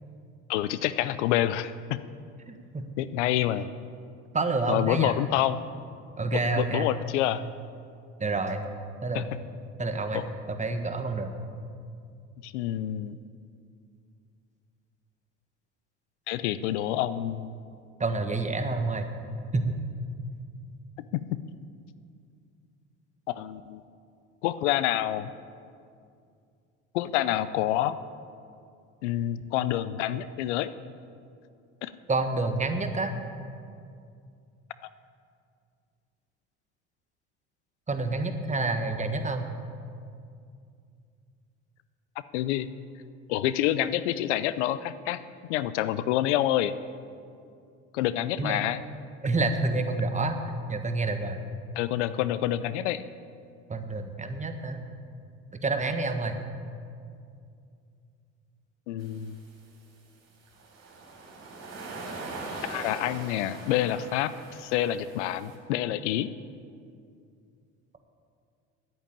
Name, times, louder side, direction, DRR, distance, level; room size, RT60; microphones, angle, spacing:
voice 1, 0.5-2.0 3.0-3.7 4.7-5.6 6.3-7.4 9.1-9.2 10.1-10.2 12.4-13.2 16.3-17.5 21.0-21.4 23.3-23.8 24.4-25.3 26.9-28.0 29.0-30.7 31.8-31.9 42.3-42.7 43.3-45.2 45.5-46.7 47.9-48.8 51.8-53.0 58.9-59.4 62.7-64.3 64.6-66.3, left 13 dB, 80° left, 15 dB, 0.6 m, -27 dB
voice 2, 2.5-2.9 4.3-5.1 6.2-7.0 8.2-8.7 9.0-9.2 9.8-11.4 18.0-19.1 19.5-19.8 32.1-33.1 37.9-39.5 48.4-48.6 49.2-50.4 50.7-51.4 53.7-54.8 55.6-56.3, right 3 dB, 20° right, 6 dB, 1.4 m, -28 dB
sound 1, 59.0-59.4 60.5-65.5, right 3 dB, 45° right, 3.9 m, -41 dB
10.5 x 8.7 x 8.8 m, 2.4 s
hypercardioid pair, 70°, 35 cm